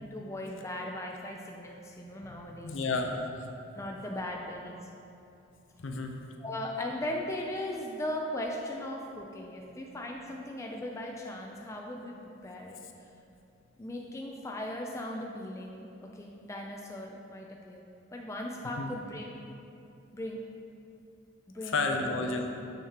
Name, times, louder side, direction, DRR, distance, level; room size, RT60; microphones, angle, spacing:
voice 1, 0.0-2.8 3.7-4.9 6.4-12.8 13.8-19.5 20.1-20.4 21.5-22.2, left 1 dB, 15° left, 0 dB, 0.3 m, -38 dB
voice 2, 2.6-3.5 5.8-6.2 18.8-18.9 21.6-22.5, left 3 dB, 60° left, 3 dB, 0.5 m, -31 dB
6.6 x 6.5 x 2.9 m, 2.7 s
head